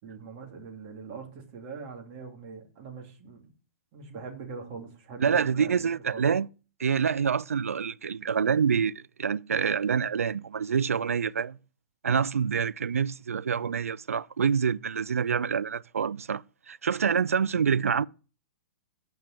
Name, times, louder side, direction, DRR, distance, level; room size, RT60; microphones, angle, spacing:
voice 1, 0.0-3.5 3.9-6.2, right 5 dB, 45° right, 2.9 m, -42 dB
voice 2, 5.2-6.5 6.8-11.6 12.0-18.0, right 6 dB, 85° right, 0.3 m, -26 dB
9.0 x 5.4 x 5.9 m
hypercardioid pair, 115°, 8 cm